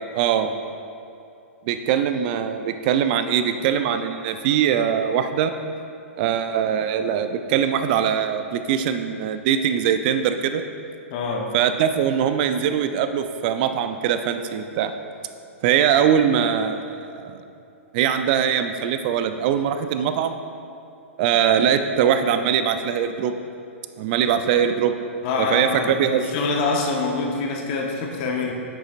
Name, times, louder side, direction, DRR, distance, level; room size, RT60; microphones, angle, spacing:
voice 1, 0.1-0.5 1.7-5.5 6.2-10.6 11.5-14.9 15.6-17.4 17.9-20.4 21.2-23.3 24.0-24.9 25.4-26.2, right 8 dB, 40° right, 9 dB, 0.5 m, -22 dB
voice 2, 11.1-11.6 25.2-28.5, left 3 dB, 40° left, 1 dB, 1.0 m, -25 dB
10.0 x 8.1 x 2.5 m, 2.6 s
figure-of-eight pair, 110°, 7 cm